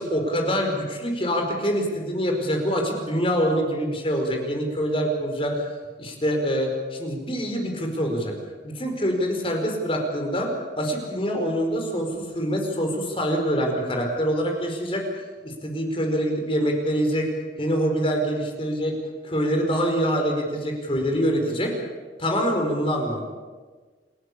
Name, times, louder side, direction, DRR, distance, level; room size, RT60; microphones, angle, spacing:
voice 1, 0.0-5.7 6.0-8.3 8.6-10.5 10.8-17.3 17.6-19.0 19.2-21.7 22.2-23.2, equal, 30° left, 3 dB, 4.8 m, -25 dB
28.5 x 16.0 x 8.6 m, 1.4 s
head